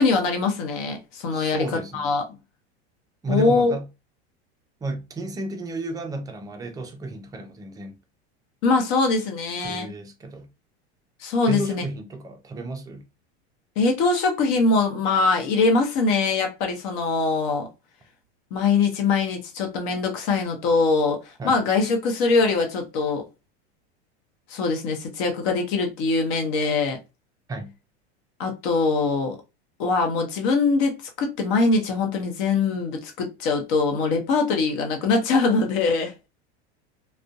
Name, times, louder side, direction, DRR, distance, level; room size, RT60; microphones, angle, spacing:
voice 1, 0.0-1.7 1.9-2.2 3.3-3.7 8.6-9.9 11.2-11.8 13.8-17.7 18.5-21.2 21.4-23.2 24.5-27.0 28.4-29.4 29.8-36.1, left 4 dB, 55° left, 0.8 m, -22 dB
voice 2, 1.3-2.1 3.2-3.9 4.8-7.9 9.6-10.5 11.5-13.0 21.4-21.6 27.5-27.8, right 2 dB, 10° right, 0.3 m, -32 dB
2.5 x 2.2 x 2.3 m
hypercardioid pair, 105°, 34 cm